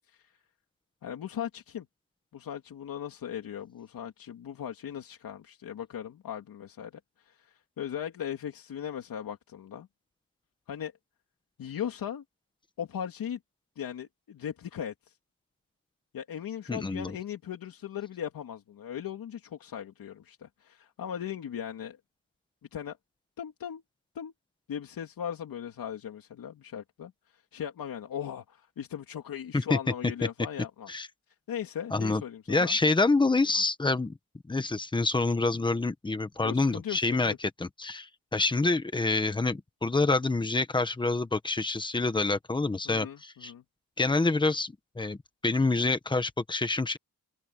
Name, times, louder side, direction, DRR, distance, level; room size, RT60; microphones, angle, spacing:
voice 1, 1.0-1.9 2.3-6.9 7.2-9.9 10.7-10.9 11.6-12.2 12.8-13.4 13.8-15.2 16.1-22.0 22.7-23.0 23.4-23.8 24.1-24.3 24.7-30.9 31.5-32.8 33.5-33.6 36.4-37.4 42.8-43.6, left 9 dB, 70° left, 2.8 m, -38 dB
voice 2, 16.7-17.2 29.5-29.8 30.9-31.1 31.9-32.2 32.5-34.2 34.5-43.5 44.0-45.2 45.4-47.0, left 3 dB, 15° left, 1.2 m, -27 dB
open air
wide cardioid pair, 180°, 36 cm